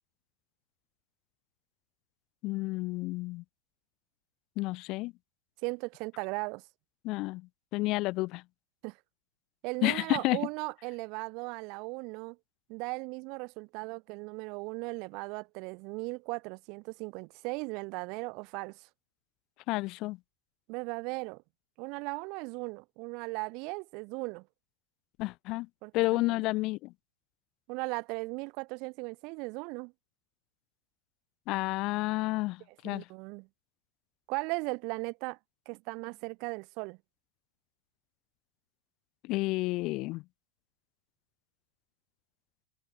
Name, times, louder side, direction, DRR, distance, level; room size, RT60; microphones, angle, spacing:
voice 1, 2.4-3.4 4.6-5.1 7.0-7.4 7.7-8.4 9.8-10.4 19.7-20.2 25.2-25.7 25.9-26.9 31.5-33.0 39.2-40.2, left 21 dB, 40° left, 0.4 m, -30 dB
voice 2, 5.6-6.6 8.8-9.0 9.6-12.4 12.7-18.9 20.7-21.4 21.8-24.5 25.8-26.4 27.7-29.9 32.8-33.5 34.3-35.4 35.7-37.0, right 30 dB, 45° right, 1.1 m, -37 dB
figure-of-eight pair, 90°, 0 cm